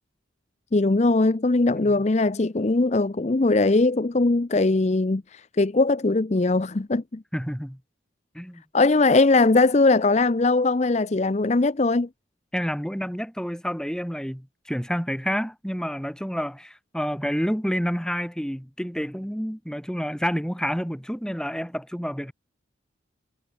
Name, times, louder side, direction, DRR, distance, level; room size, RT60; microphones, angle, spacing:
voice 1, 0.7-7.2 8.7-12.1, left 3 dB, 35° left, 0.6 m, -20 dB
voice 2, 7.3-7.8 8.3-8.6 12.5-22.3, equal, 5° left, 4.9 m, -29 dB
head